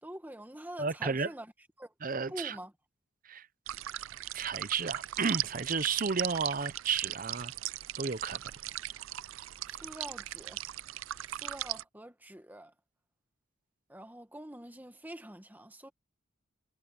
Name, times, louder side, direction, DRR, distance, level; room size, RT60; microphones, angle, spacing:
voice 1, 0.0-1.5 1.8-1.9 2.3-2.7 9.7-10.6 11.3-12.7 13.9-15.9, right 1 dB, 10° right, 1.4 m, -45 dB
voice 2, 0.8-1.3 2.0-2.6 3.2-3.5 4.3-7.5 8.0-8.4, right 5 dB, 45° right, 0.7 m, -32 dB
sound 1, 3.7-11.8, right 14 dB, 85° right, 0.4 m, -38 dB
head